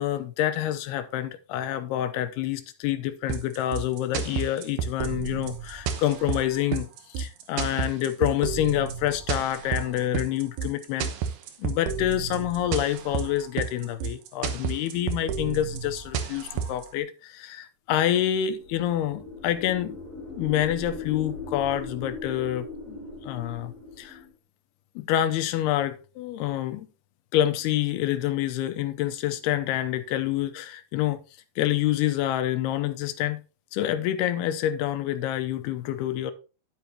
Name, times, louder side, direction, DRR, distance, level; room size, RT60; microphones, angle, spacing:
voice 1, 0.0-11.1 11.6-20.0 20.4-24.2 25.0-26.9 27.3-31.2 31.6-33.4 33.7-36.3, left 12 dB, 85° left, 2.7 m, -27 dB
sound 1, 3.3-16.9, right 7 dB, 65° right, 2.1 m, -31 dB
sound 2, 18.4-24.3, left 3 dB, 20° right, 5.1 m, -39 dB
10.5 x 8.4 x 2.9 m
omnidirectional pair, 4.6 m